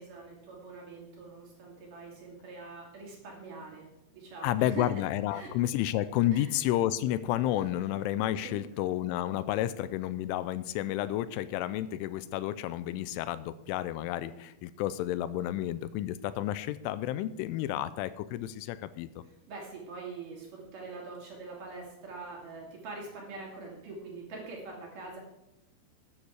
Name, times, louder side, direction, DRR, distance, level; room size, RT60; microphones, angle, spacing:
voice 1, 0.0-3.9 4.1-4.9 5.3-5.5 6.3-6.5 8.4-8.7 19.5-25.2, right 3 dB, 50° right, -1 dB, 3.9 m, -44 dB
voice 2, 4.4-19.2, left 13 dB, 85° left, 15 dB, 3.0 m, -31 dB
13.0 x 9.8 x 4.8 m, 0.87 s
omnidirectional pair, 5.5 m